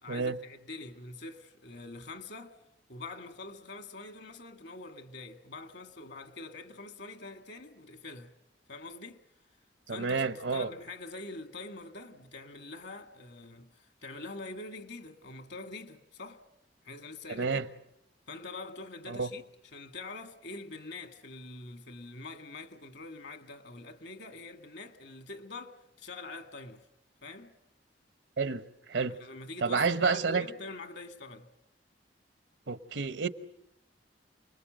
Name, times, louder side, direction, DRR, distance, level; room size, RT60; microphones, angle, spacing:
voice 1, 0.0-2.6 2.9-8.3 8.7-9.3 9.9-16.4 16.8-17.6 18.3-19.4 19.7-26.9 27.2-27.6 29.2-31.5, left 3 dB, 65° left, 1.8 m, -45 dB
voice 2, 9.9-10.7 17.4-17.6 19.1-19.3 28.4-28.6 28.9-29.2 29.6-30.4 32.7-33.3, right 4 dB, 85° right, 1.0 m, -29 dB
28.5 x 20.5 x 7.7 m
head